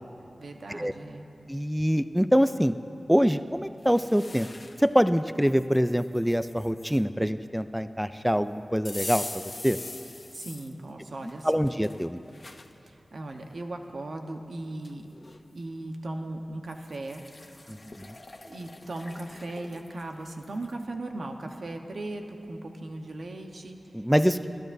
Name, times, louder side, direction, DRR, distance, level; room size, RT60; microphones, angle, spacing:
voice 1, 0.4-1.3 10.3-11.5 12.8-15.1 15.5-17.2 17.5-17.6 18.4-24.6, right 2 dB, 70° right, 4 dB, 1.0 m, -38 dB
voice 2, 1.5-2.7 3.1-4.5 4.8-9.2 9.6-9.8 11.4-12.2 23.9-24.4, equal, 5° right, 11 dB, 0.3 m, -24 dB
sound 1, 3.8-4.9 5.4-7.0 8.9-10.7 11.3-12.7 13.3-13.4 14.5-14.6 14.8-15.4 16.7-20.7, left 2 dB, 40° left, 0.7 m, -43 dB
27.0 x 14.0 x 2.7 m, 2.7 s
wide cardioid pair, 75°, 0 cm